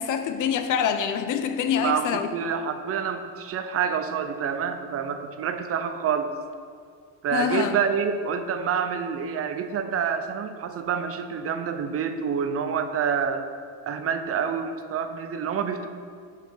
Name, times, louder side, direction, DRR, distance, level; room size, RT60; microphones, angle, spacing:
voice 1, 0.0-2.3 7.3-7.8, left 8 dB, 55° left, 0.6 m, -25 dB
voice 2, 1.8-6.3 7.2-13.5 13.8-15.9, right 7 dB, 40° right, 0.6 m, -27 dB
6.6 x 4.8 x 6.2 m
cardioid pair, 125°, 37 cm